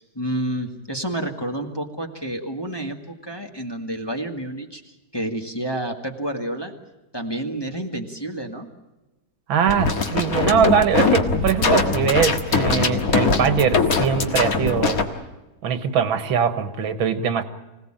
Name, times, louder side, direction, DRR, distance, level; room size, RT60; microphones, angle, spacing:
voice 1, 0.0-6.7 7.1-8.7, right 1 dB, 15° left, 2 dB, 1.7 m, -29 dB
voice 2, 9.5-15.0 15.6-17.4, right 7 dB, 90° right, 10 dB, 2.2 m, -21 dB
sound 1, 9.7-15.0, left 4 dB, 50° left, 2.0 m, -21 dB
25.5 x 17.5 x 8.8 m, 1.1 s
omnidirectional pair, 2.1 m